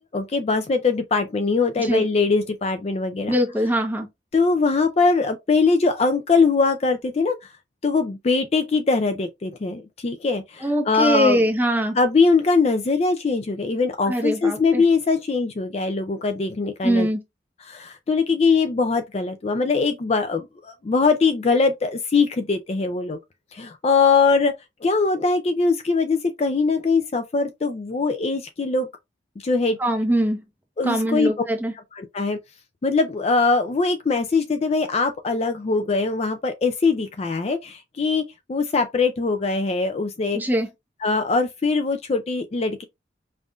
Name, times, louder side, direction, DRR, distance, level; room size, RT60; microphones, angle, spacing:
voice 1, 0.1-3.4 4.3-7.4 7.8-11.4 11.9-17.1 17.6-23.2 23.5-24.5 24.8-28.9 29.4-29.8 30.8-31.3 32.0-32.4 32.8-38.2 38.5-40.4 41.0-42.8, left 4 dB, 35° left, 0.3 m, -21 dB
voice 2, 3.3-4.1 10.6-11.9 14.1-14.8 16.8-17.2 29.8-30.4 30.8-31.7 40.3-40.7, equal, 10° right, 0.8 m, -22 dB
5.3 x 2.5 x 2.4 m
head